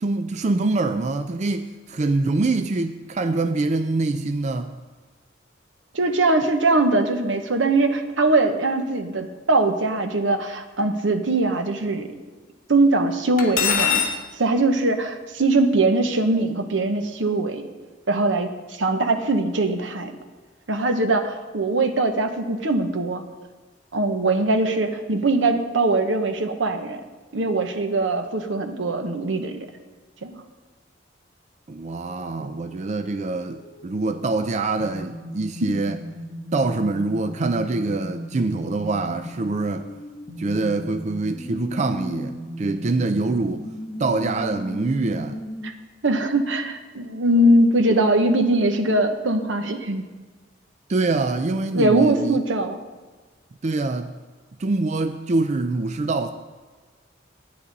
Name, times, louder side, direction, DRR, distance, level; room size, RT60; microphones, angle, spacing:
voice 1, 0.0-4.7 31.7-36.0 36.5-39.9 40.4-43.7 44.0-45.4 50.9-52.4 53.6-54.1 54.6-56.3, right 3 dB, 40° right, 8 dB, 0.4 m, -24 dB
voice 2, 5.9-12.1 12.7-14.0 14.4-17.7 18.1-20.2 20.7-23.2 23.9-27.0 27.3-29.7 30.2-30.4 35.6-35.7 45.6-45.7 46.0-50.0 51.7-52.8, right 2 dB, 80° right, 7 dB, 1.0 m, -21 dB
Cutlery silverware, 13.4-14.2, left 7 dB, 45° left, 1.1 m, -21 dB
sound 1, 31.9-45.7, equal, 25° left, 1.2 m, -37 dB
12.5 x 9.7 x 4.0 m, 1.4 s
head